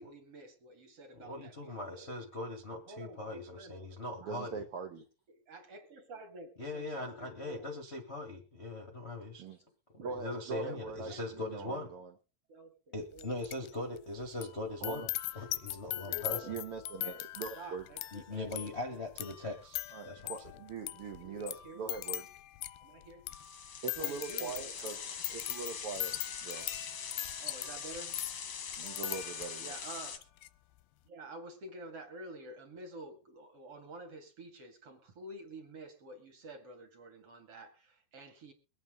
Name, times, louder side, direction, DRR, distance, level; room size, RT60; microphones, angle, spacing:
voice 1, 0.0-2.1 2.7-3.9 4.2-4.4 5.3-7.7 8.7-9.0 10.0-10.2 10.6-12.0 12.5-13.3 15.9-16.5 17.0-17.3 17.5-19.0 19.4-19.5 21.2-22.0 22.8-23.2 24.0-25.4 27.4-28.2 29.6-30.2 31.1-38.5, right 1 dB, 45° right, 5 dB, 2.6 m, -50 dB
voice 2, 1.1-4.6 6.6-9.5 10.1-11.9 12.9-15.1 15.3-16.4 18.1-20.3, left 2 dB, 40° left, 4 dB, 0.9 m, -40 dB
voice 3, 4.3-5.0 9.4-9.6 10.0-12.1 14.8-15.1 16.4-17.8 19.9-22.3 23.8-25.0 25.3-26.6 28.8-29.7, right 5 dB, 75° right, 3 dB, 1.3 m, -42 dB
sound 1, 13.2-13.7 14.0-29.7 30.2-30.5, left 16 dB, 90° left, 2.7 m, -41 dB
sound 2, 23.3-30.2, left 7 dB, 55° left, 1.4 m, -43 dB
23.0 x 8.9 x 3.7 m, 0.31 s
omnidirectional pair, 4.3 m